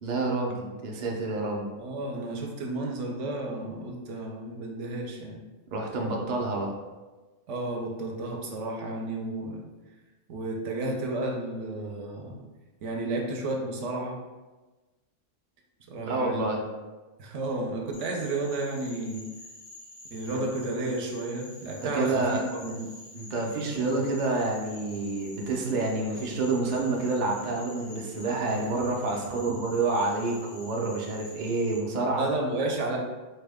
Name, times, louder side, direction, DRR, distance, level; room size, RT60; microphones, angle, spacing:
voice 1, 0.0-1.6 5.7-6.7 16.0-16.6 21.9-22.4 22.7-22.8 23.1-32.3, right 3 dB, 50° right, -1 dB, 0.6 m, -28 dB
voice 2, 1.8-5.4 7.5-9.6 10.3-12.4 12.8-14.2 15.9-16.4 17.2-19.3 20.0-22.8 23.7-24.0 29.5-29.6 32.2-33.0, right 2 dB, 75° right, 0 dB, 0.9 m, -32 dB
Frog, 17.9-31.8, left 1 dB, 90° left, 1.2 m, -48 dB
4.1 x 2.2 x 3.4 m, 1.2 s
omnidirectional pair, 1.3 m